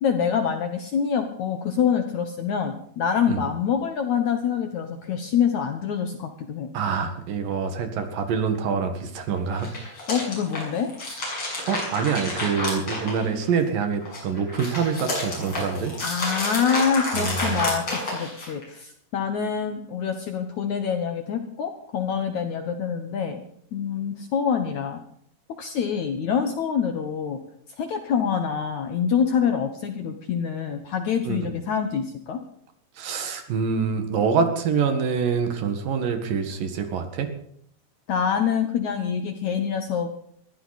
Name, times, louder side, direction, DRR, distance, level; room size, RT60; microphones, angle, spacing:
voice 1, 0.0-6.7 10.1-10.9 16.0-23.4 23.7-25.0 25.6-27.4 27.8-32.4 38.1-40.2, left 7 dB, 65° left, 6 dB, 2.0 m, -26 dB
voice 2, 6.7-9.7 11.7-15.9 17.1-17.6 31.2-31.4 33.0-37.3, right 6 dB, 65° right, 7 dB, 3.2 m, -25 dB
sound 1, 9.5-13.6 14.0-18.6, left 2 dB, 35° left, 7.7 m, -30 dB
21.0 x 15.5 x 4.2 m, 0.66 s
omnidirectional pair, 4.6 m